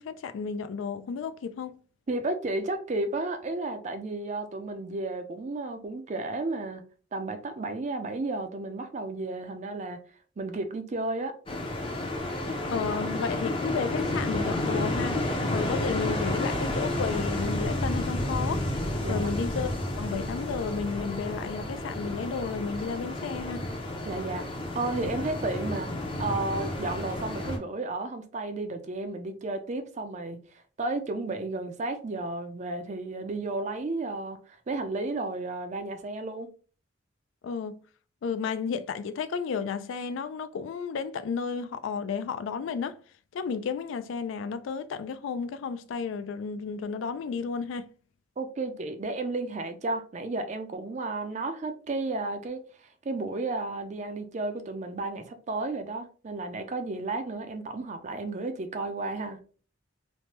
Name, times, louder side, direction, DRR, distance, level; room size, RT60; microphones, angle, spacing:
voice 1, 0.0-1.8 12.7-18.7 19.1-23.7 37.4-37.8 38.2-43.0 43.3-47.9, left 5 dB, 75° left, 0.3 m, -32 dB
voice 2, 2.1-6.8 7.1-10.0 10.4-11.3 19.0-19.3 24.1-24.5 24.7-25.9 26.2-30.4 30.8-34.4 34.7-36.5 48.4-52.6 53.0-59.4, right 2 dB, 40° right, 0.4 m, -33 dB
sound 1, 11.5-27.6, left 1 dB, 30° left, 0.5 m, -31 dB
3.1 x 2.1 x 2.8 m
head